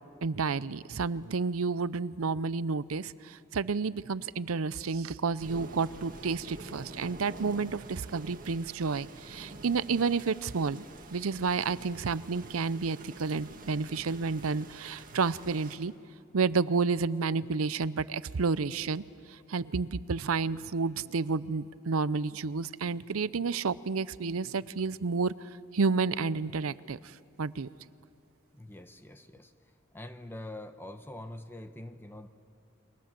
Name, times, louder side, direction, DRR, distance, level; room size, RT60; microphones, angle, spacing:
voice 1, 0.2-10.8 11.1-15.9 16.3-19.0 19.5-25.3 25.7-27.0 27.4-27.7, right 4 dB, 90° right, 17 dB, 0.6 m, -30 dB
sound 1, 5.4-15.8, right 2 dB, 40° right, 1.9 m, -47 dB
voice 2, 28.5-29.5 29.9-32.3, left 1 dB, 10° left, 8 dB, 0.9 m, -44 dB
29.5 x 23.5 x 7.6 m, 2.5 s
head